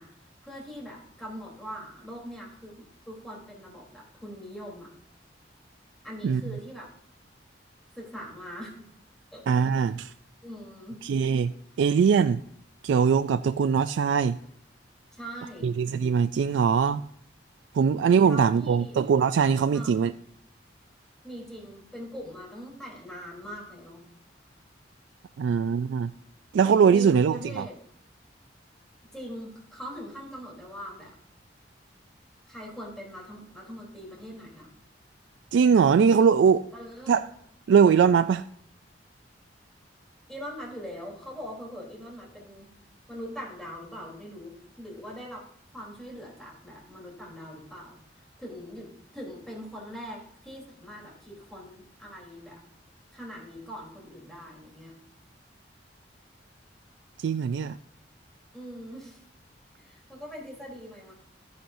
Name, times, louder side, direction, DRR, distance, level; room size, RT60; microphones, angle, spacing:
voice 1, 0.0-4.9 6.0-6.9 7.9-8.9 9.3-9.4 10.4-11.0 15.1-15.7 18.2-19.0 19.7-20.1 21.2-24.0 26.9-27.8 29.1-31.2 32.5-34.7 36.7-37.2 40.3-42.7 43.1-45.5 45.7-52.6 53.1-54.9 58.5-59.2 59.7-61.1, equal, 5° left, -3 dB, 3.4 m, -42 dB
voice 2, 9.5-10.1 11.0-11.5 11.8-12.4 12.8-14.4 15.6-17.0 17.7-20.1 25.4-26.1 26.5-27.7 35.5-36.7 37.1-37.3 37.7-38.5 57.2-57.8, right 6 dB, 75° right, 11 dB, 0.3 m, -21 dB
13.0 x 10.0 x 2.6 m, 0.69 s
head